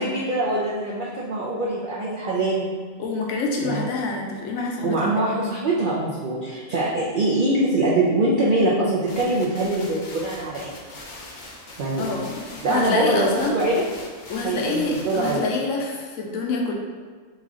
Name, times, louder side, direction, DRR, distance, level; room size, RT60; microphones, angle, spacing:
voice 1, 0.0-2.7 3.6-3.9 4.8-10.7 11.8-12.1 12.6-13.8 14.4-15.4, right 2 dB, 70° right, -6 dB, 0.4 m, -23 dB
voice 2, 3.0-5.4 12.0-13.6 14.3-16.7, left 3 dB, 80° left, 0 dB, 1.0 m, -27 dB
sound 1, 9.0-15.5, left 2 dB, 55° left, 0.5 m, -41 dB
3.1 x 2.4 x 3.7 m, 1.6 s
omnidirectional pair, 1.4 m